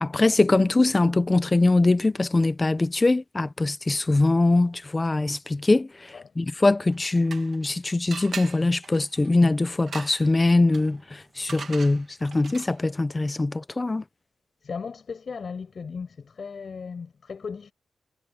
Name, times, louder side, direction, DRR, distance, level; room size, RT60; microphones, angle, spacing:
voice 1, 0.0-5.9 6.4-14.0, left 2 dB, 20° left, 0.7 m, -22 dB
sound 1, 6.8-7.7 8.1-12.9, right 5 dB, 55° right, 2.0 m, -41 dB
voice 2, 14.6-17.7, left 5 dB, 50° left, 6.8 m, -36 dB
wide cardioid pair, 155°, 0 cm